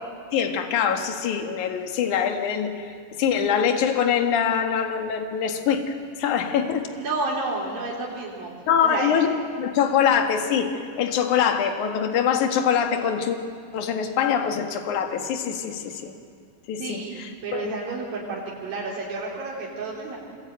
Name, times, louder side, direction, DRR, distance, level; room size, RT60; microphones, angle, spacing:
voice 1, 0.3-2.9 3.2-6.9 8.7-10.7 11.0-13.4 13.7-16.1 16.7-17.7, left 7 dB, 60° left, 5 dB, 3.0 m, -24 dB
voice 2, 7.0-8.5 8.8-9.1 16.8-20.2, right 3 dB, 75° right, -5 dB, 5.6 m, -31 dB
26.0 x 22.0 x 9.2 m, 2.2 s
omnidirectional pair, 4.2 m